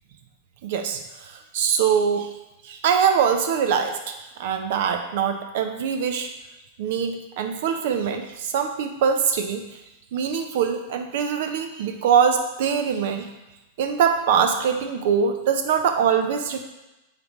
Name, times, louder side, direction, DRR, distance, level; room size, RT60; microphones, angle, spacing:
voice 1, 0.6-2.3 2.6-6.3 6.8-9.6 10.1-13.3 13.8-16.6, right 7 dB, 65° right, 6 dB, 0.7 m, -23 dB
8.4 x 3.8 x 3.1 m, 1.0 s
hypercardioid pair, 100°, 0 cm